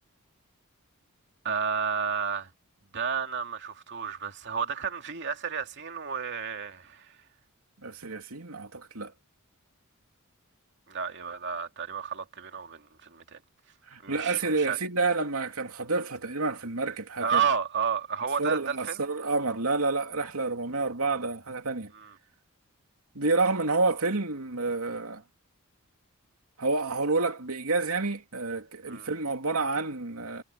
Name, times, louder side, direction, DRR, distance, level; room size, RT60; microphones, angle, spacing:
voice 1, 1.4-2.5 2.9-7.2 10.9-13.4 14.0-14.8 17.2-19.0 21.9-22.1 28.9-29.1, right 6 dB, 55° right, 2.6 m, -31 dB
voice 2, 7.8-9.1 13.9-17.4 18.4-21.9 23.1-25.2 26.6-30.4, right 3 dB, 80° right, 2.9 m, -29 dB
head